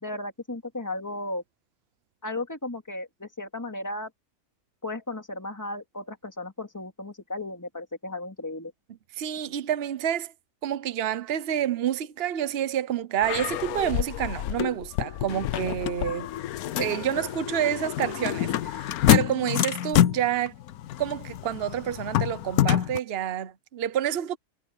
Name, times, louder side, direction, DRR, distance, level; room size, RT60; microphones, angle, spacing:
voice 1, 0.0-1.4 2.2-4.1 4.8-8.7, left 2 dB, 10° left, 2.4 m, -35 dB
voice 2, 9.2-10.3 10.6-16.3 16.8-20.5 21.0-24.4, right 10 dB, 50° right, 1.0 m, -28 dB
sound 1, 13.2-23.0, left 12 dB, 90° left, 1.1 m, -27 dB
omnidirectional pair, 1.5 m